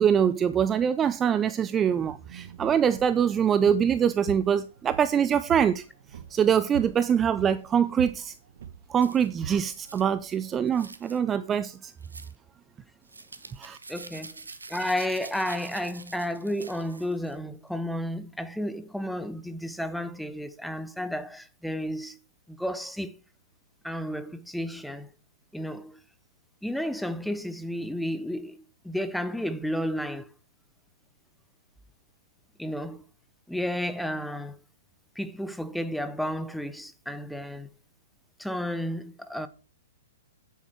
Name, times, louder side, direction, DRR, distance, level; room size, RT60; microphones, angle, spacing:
voice 1, 0.0-5.8 6.3-8.3 8.9-11.9 13.6-13.8, right 8 dB, 20° right, 0.4 m, -24 dB
sound 1, 2.0-10.7, right 8 dB, 55° right, 1.0 m, -44 dB
sound 2, 9.0-9.3 9.9-10.1 10.7-11.2 12.0-12.4 13.1-17.3, right 3 dB, 75° right, 1.2 m, -45 dB
voice 2, 13.9-14.3 14.7-22.2 22.5-23.1 23.8-25.1 25.5-26.0 26.6-30.3 32.6-33.0 33.5-34.6 35.2-37.7 38.4-39.5, equal, ahead, 0.9 m, -32 dB
9.9 x 7.7 x 4.7 m
figure-of-eight pair, 115°, 0 cm